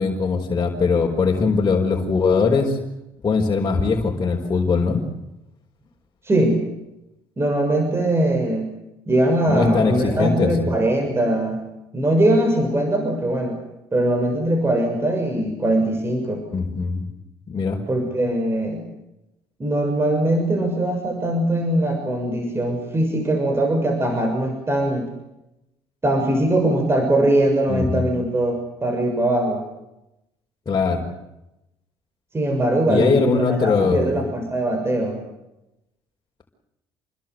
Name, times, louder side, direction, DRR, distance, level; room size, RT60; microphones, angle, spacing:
voice 1, 0.0-2.8 3.2-5.0 9.5-10.7 16.5-17.1 17.5-17.8 27.7-28.1 30.7-31.0 32.9-34.3, left 4 dB, 35° left, -2 dB, 5.1 m, -21 dB
voice 2, 6.2-6.6 7.4-8.7 9.1-11.6 11.9-13.6 13.9-16.4 17.9-18.8 19.6-25.1 26.0-29.6 32.3-35.2, right 1 dB, 25° right, 5 dB, 6.7 m, -21 dB
28.5 x 21.5 x 8.1 m, 0.90 s
supercardioid pair, 85°, 10 cm